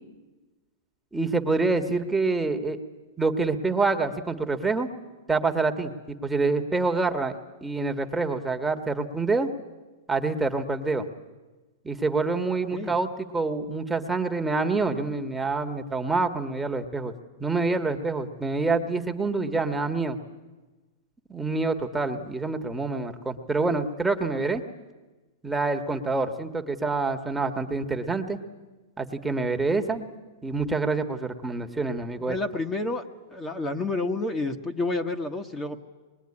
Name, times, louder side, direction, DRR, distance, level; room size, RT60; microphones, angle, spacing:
voice 1, 1.1-2.8 3.2-4.9 5.3-7.4 7.6-9.5 10.1-11.1 11.8-13.1 13.3-17.1 17.4-20.2 21.3-24.6 25.4-28.4 29.0-30.1 30.4-32.4, right 3 dB, 10° right, 5 dB, 1.6 m, -26 dB
voice 2, 32.2-33.0 33.3-35.8, left 2 dB, 20° left, 4 dB, 1.4 m, -29 dB
24.5 x 21.5 x 9.9 m, 1.2 s
hypercardioid pair, 130°, 0 cm